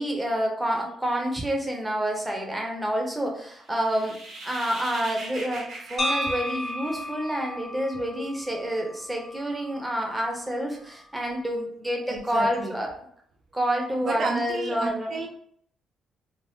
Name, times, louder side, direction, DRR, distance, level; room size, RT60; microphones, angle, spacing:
voice 1, 0.0-4.2 4.4-12.9 13.5-15.1, equal, 10° right, 0 dB, 0.7 m, -28 dB
sound 1, 3.7-7.3, right 2 dB, 75° right, 1.1 m, -40 dB
sound 2, 6.0-10.1, left 1 dB, 40° left, 0.5 m, -33 dB
voice 2, 12.1-12.8 14.0-15.3, right 3 dB, 60° right, 1 dB, 0.4 m, -31 dB
2.6 x 2.0 x 3.4 m, 0.65 s
cardioid pair, 90°, 0 cm